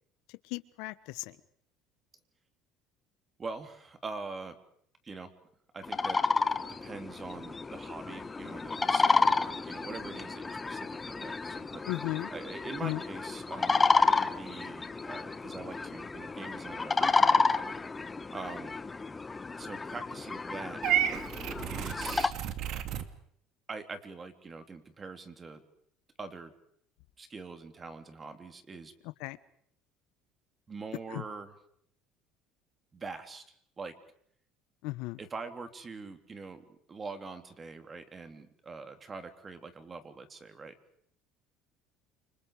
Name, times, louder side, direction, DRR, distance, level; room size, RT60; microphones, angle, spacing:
voice 1, 0.5-1.3 11.9-12.3 12.8-13.0 29.2-29.4 31.1-31.2 34.8-35.2, left 19 dB, 80° left, 15 dB, 1.3 m, -35 dB
voice 2, 3.4-4.6 5.0-5.3 5.7-6.2 6.8-11.8 12.3-17.5 18.3-18.8 19.5-20.8 21.7-22.3 23.7-25.6 26.2-26.5 27.2-28.9 30.7-31.6 32.9-33.4 33.8-33.9 35.2-40.7, right 4 dB, 25° right, 8 dB, 3.3 m, -43 dB
sound 1, 5.8-22.3, left 4 dB, 15° left, 1.1 m, -30 dB
Purr / Meow, 20.8-23.1, right 10 dB, 55° right, 2.4 m, -31 dB
29.5 x 26.5 x 5.0 m, 0.65 s
cardioid pair, 135°, 0 cm